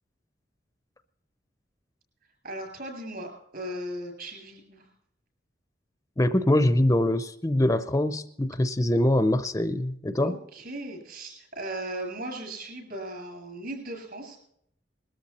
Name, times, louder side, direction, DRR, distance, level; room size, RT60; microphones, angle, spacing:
voice 1, 2.4-4.9 10.2-14.4, right 1 dB, 55° right, 3 dB, 7.2 m, -37 dB
voice 2, 6.2-10.4, left 1 dB, 20° left, 12 dB, 0.6 m, -23 dB
21.0 x 13.0 x 4.2 m, 0.72 s
head